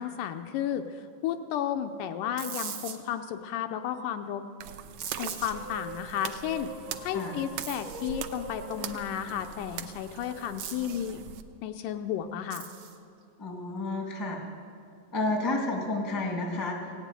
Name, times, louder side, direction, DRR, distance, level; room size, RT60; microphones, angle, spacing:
voice 1, 0.0-4.5 5.2-6.7 7.0-11.2 11.6-12.7, left 9 dB, 80° left, 7 dB, 2.0 m, -33 dB
sound 1, 2.4-3.0 5.0-5.5 7.6-8.1 10.6-11.1 12.5-13.0, right 8 dB, 60° right, 1.8 m, -40 dB
sound 2, 4.6-11.4, right 10 dB, 80° right, 1.8 m, -42 dB
sound 3, 5.5-10.2, right 3 dB, 45° right, 1.1 m, -44 dB
voice 2, 13.4-14.4 15.1-16.9, left 2 dB, 15° left, 0 dB, 0.7 m, -31 dB
17.0 x 8.2 x 9.0 m, 2.5 s
omnidirectional pair, 3.9 m